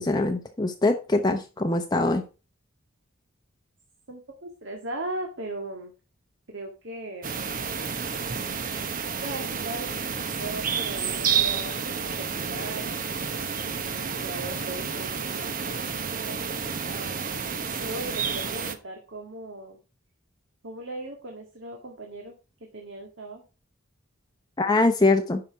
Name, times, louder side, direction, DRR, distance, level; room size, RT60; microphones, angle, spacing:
voice 1, 0.0-2.2 24.6-25.4, left 2 dB, 20° left, 5 dB, 0.8 m, -23 dB
voice 2, 4.1-5.9 6.5-7.4 9.2-13.1 14.1-16.5 16.9-17.3 17.8-19.8 20.6-22.3 22.6-23.4, right 1 dB, 60° right, 2 dB, 1.9 m, -38 dB
sound 1, 7.2-18.8, right 6 dB, 40° right, 1.0 m, -30 dB
10.0 x 5.8 x 4.6 m, 0.32 s
head